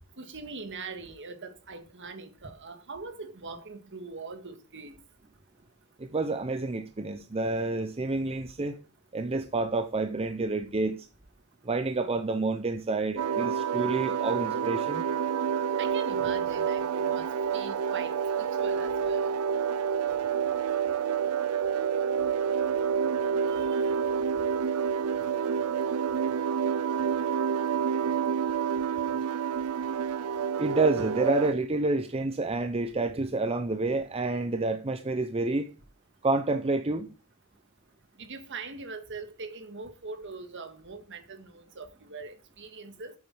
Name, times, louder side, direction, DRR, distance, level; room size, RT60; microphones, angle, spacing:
voice 1, 0.2-4.9 15.8-17.3 17.5-19.4 23.5-23.9 38.2-43.1, right 4 dB, 55° right, 1.8 m, -42 dB
voice 2, 6.0-8.8 9.1-11.0 11.6-15.0 30.6-35.7 36.2-37.1, right 2 dB, 25° right, 0.6 m, -28 dB
sound 1, 13.2-31.5, right 7 dB, 80° right, 0.5 m, -28 dB
8.5 x 8.5 x 4.7 m
head